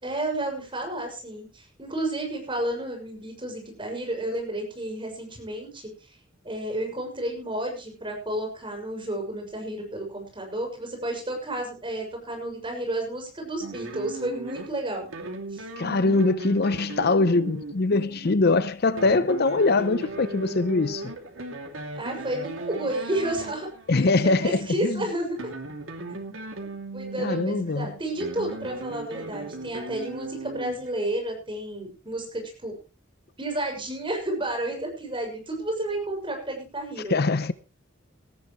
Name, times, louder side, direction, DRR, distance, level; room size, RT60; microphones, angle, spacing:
voice 1, 0.0-5.9 6.4-15.1 15.5-15.6 17.9-18.3 22.0-23.7 24.0-25.5 26.9-32.7 33.4-37.2, right 1 dB, 25° right, 6.5 m, -31 dB
sound 1, 13.6-24.2 25.2-31.1, right 2 dB, 85° right, 2.8 m, -38 dB
voice 2, 15.8-21.1 23.9-25.0 27.2-27.9 37.1-37.5, left 3 dB, 55° left, 0.7 m, -23 dB
18.5 x 14.0 x 3.2 m
head